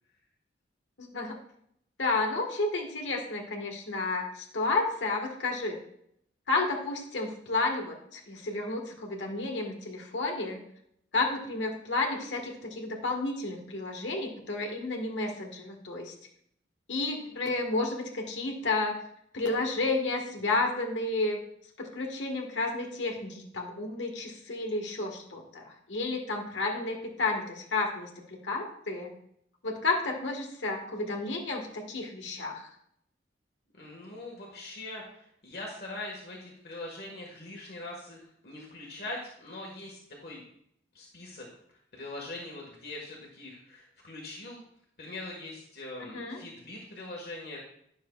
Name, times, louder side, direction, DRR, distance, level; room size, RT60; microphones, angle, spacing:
voice 1, 1.0-1.3 2.0-5.8 6.5-10.6 11.1-16.1 16.9-19.0 19.3-21.4 21.8-29.1 29.6-32.7 46.0-46.4, left 3 dB, 90° left, 1 dB, 1.5 m, -31 dB
voice 2, 33.8-35.0 35.4-40.4 40.9-41.4 41.9-44.6 45.0-47.6, left 2 dB, 55° left, -2 dB, 1.5 m, -42 dB
10.5 x 6.5 x 2.3 m, 0.71 s
head